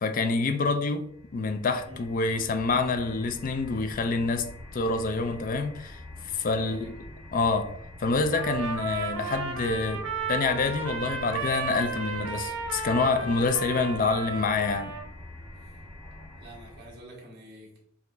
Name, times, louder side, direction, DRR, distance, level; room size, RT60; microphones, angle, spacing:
voice 1, 0.0-1.1 1.3-4.5 4.7-6.0 6.3-7.0 7.3-7.7 8.0-10.0 10.3-14.9, left 3 dB, 40° left, 0.4 m, -27 dB
sound 1, 1.0-17.1, left 1 dB, ahead, 0.8 m, -45 dB
voice 2, 6.5-6.9 15.6-15.7 16.4-17.8, equal, 50° right, 1.6 m, -48 dB
Trumpet, 8.3-15.1, right 4 dB, 85° right, 1.0 m, -34 dB
4.9 x 2.5 x 3.2 m
head